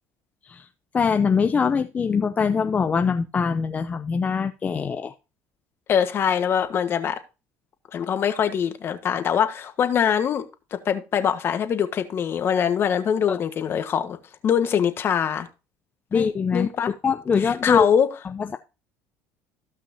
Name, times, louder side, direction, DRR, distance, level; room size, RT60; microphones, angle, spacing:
voice 1, 0.9-5.1 13.3-13.4 16.1-16.7 17.0-17.9 18.4-18.6, left 5 dB, 30° left, 0.6 m, -23 dB
voice 2, 5.9-7.2 7.9-10.4 10.8-14.2 14.4-15.5 16.1-16.3 16.5-16.9 17.4-18.1, left 8 dB, 45° left, 1.5 m, -23 dB
15.0 x 5.9 x 2.8 m
supercardioid pair, 100°, 6 cm